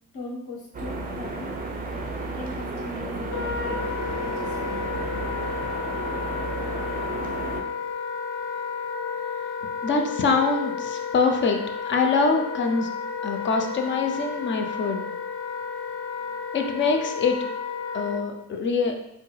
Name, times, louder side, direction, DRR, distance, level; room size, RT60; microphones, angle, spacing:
voice 1, 0.1-1.6 2.2-5.0, left 2 dB, 50° left, -3 dB, 1.4 m, -40 dB
sound 1, 0.7-7.6, right 2 dB, 20° right, 0.6 m, -32 dB
Wind instrument woodwind instrument, 3.3-18.2, left 5 dB, 65° left, 0.7 m, -32 dB
voice 2, 9.8-11.6 11.8-12.9 13.2-15.0 16.5-17.4 17.9-18.9, left 4 dB, 25° left, 4 dB, 0.5 m, -24 dB
4.1 x 2.1 x 3.2 m, 0.80 s
hypercardioid pair, 75°, 46 cm